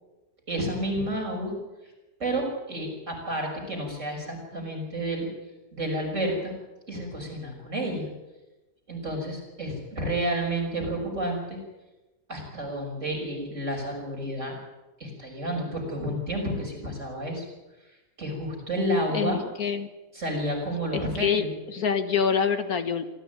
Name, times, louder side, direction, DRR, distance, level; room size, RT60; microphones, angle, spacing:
voice 1, 0.5-1.5 2.2-5.3 5.7-6.5 6.9-8.1 8.9-11.6 12.3-14.5 15.0-17.4 18.2-19.4 20.1-21.5, right 1 dB, 50° right, 0 dB, 6.5 m, -30 dB
voice 2, 19.1-19.9 20.9-23.1, left 7 dB, 65° left, 8 dB, 1.8 m, -26 dB
25.0 x 14.0 x 9.2 m, 1.1 s
omnidirectional pair, 1.7 m